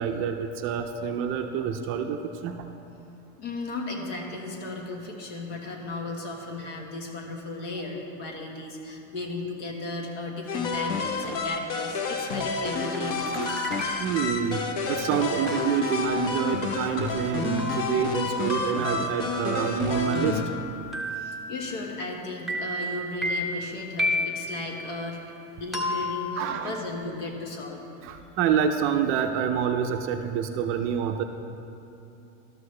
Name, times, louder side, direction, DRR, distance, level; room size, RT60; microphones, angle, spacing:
voice 1, 0.0-2.7 14.0-14.6 14.9-20.4 26.4-26.8 28.0-31.2, right 7 dB, 35° right, 5 dB, 0.4 m, -27 dB
voice 2, 3.4-13.5 21.1-25.2 25.6-27.8, left 2 dB, 70° left, 0 dB, 1.6 m, -35 dB
sound 1, 10.5-20.4, left 4 dB, 50° left, 0.9 m, -29 dB
sound 2, 12.9-14.3 15.5-22.1 22.5-24.7 25.7-27.0, left 1 dB, ahead, 0.7 m, -34 dB
12.5 x 6.3 x 3.2 m, 2.7 s
supercardioid pair, 125°, 38 cm